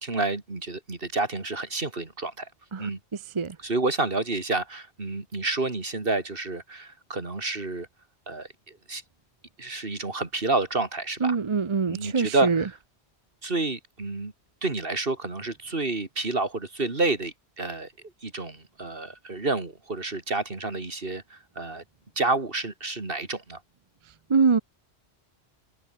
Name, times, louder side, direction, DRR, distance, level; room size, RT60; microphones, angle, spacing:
voice 1, 0.0-2.5 2.8-3.0 3.6-7.9 8.3-9.0 9.6-11.4 11.9-12.7 13.4-14.3 14.6-17.9 18.2-21.8 22.2-23.6, right 3 dB, 55° right, 3.0 m, -29 dB
voice 2, 11.2-12.6 24.3-24.6, right 5 dB, 30° right, 0.7 m, -23 dB
omnidirectional pair, 1.1 m